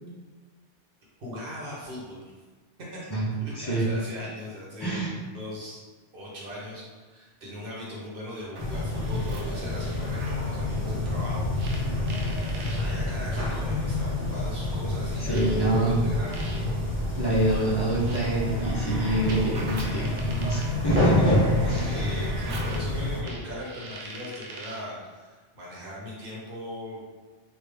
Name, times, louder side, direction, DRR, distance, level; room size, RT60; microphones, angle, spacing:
voice 1, 1.2-2.2 2.9-3.0 3.4-5.0 5.3-5.8 6.1-11.5 11.9-12.2 12.6-16.8 21.9-27.0, left 1 dB, 50° right, -5 dB, 1.1 m, -39 dB
voice 2, 3.5-3.9 4.8-5.2 15.2-16.0 17.2-22.2, right 2 dB, 35° left, -6 dB, 0.4 m, -26 dB
granular synthesizer pudrican, 8.4-10.4 11.6-12.8 13.9-14.0 15.3-24.9, right 2 dB, 80° right, 0.9 m, -43 dB
sound 1, 8.6-23.2, left 2 dB, 10° right, 0.8 m, -28 dB
3.4 x 2.3 x 3.3 m, 1.4 s
omnidirectional pair, 1.2 m